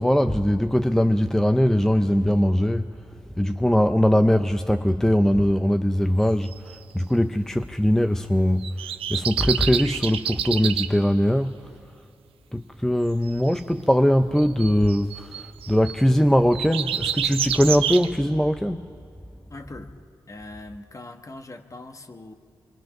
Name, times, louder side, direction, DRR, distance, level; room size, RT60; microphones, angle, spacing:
voice 1, 0.0-2.9 3.4-11.5 12.5-18.9, equal, 5° left, 0.6 m, -21 dB
sound 1, 6.5-6.8 8.6-10.9 13.3-13.5 14.4-16.0 16.5-18.1, right 9 dB, 90° right, 0.7 m, -28 dB
voice 2, 19.5-19.9 20.3-22.3, left 2 dB, 35° left, 1.5 m, -41 dB
24.5 x 24.0 x 6.0 m
supercardioid pair, 50°, 9 cm